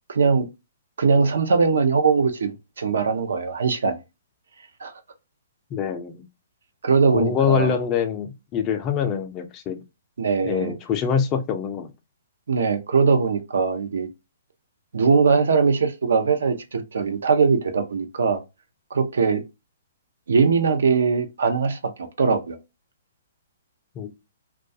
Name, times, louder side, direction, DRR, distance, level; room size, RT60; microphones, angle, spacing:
voice 1, 0.1-0.5 1.0-4.0 4.8-4.9 6.8-7.7 10.2-10.7 12.5-14.1 14.9-18.4 18.9-19.4 20.3-22.6, right 5 dB, 80° right, 0.5 m, -21 dB
voice 2, 5.7-6.2 7.1-9.8 10.4-11.9 24.0-24.1, left 7 dB, 25° left, 0.4 m, -24 dB
2.3 x 2.2 x 2.6 m
hypercardioid pair, 145°, 0 cm